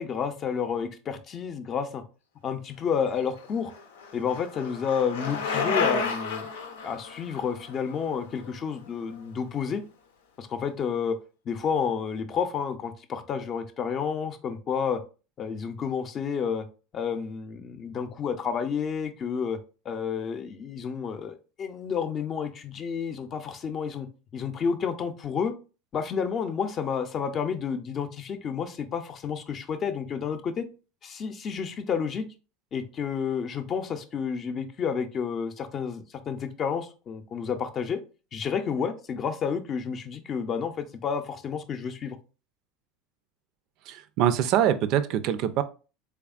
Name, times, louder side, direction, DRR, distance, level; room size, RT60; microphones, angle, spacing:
voice 1, 0.0-2.0 2.4-3.7 4.1-6.5 6.8-9.8 10.4-11.2 11.5-15.0 15.4-16.7 16.9-19.6 19.9-24.1 24.3-25.6 25.9-30.7 31.0-32.3 32.7-38.0 38.3-42.2, left 6 dB, 40° left, 9 dB, 0.6 m, -30 dB
Bicycle, 3.2-9.1, left 5 dB, 90° left, 0.6 m, -32 dB
voice 2, 43.9-45.6, right 10 dB, 60° right, 12 dB, 0.4 m, -24 dB
3.4 x 3.4 x 2.4 m, 0.34 s
hypercardioid pair, 95°, 0 cm